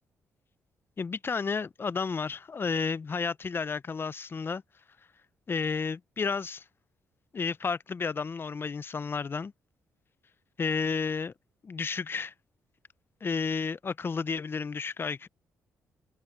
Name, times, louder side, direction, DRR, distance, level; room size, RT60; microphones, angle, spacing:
voice 1, 1.0-4.6 5.5-6.6 7.3-9.5 10.6-11.3 11.6-12.3 13.2-15.3, left 5 dB, 40° left, 0.7 m, -31 dB
supercardioid pair, 65°, 6 cm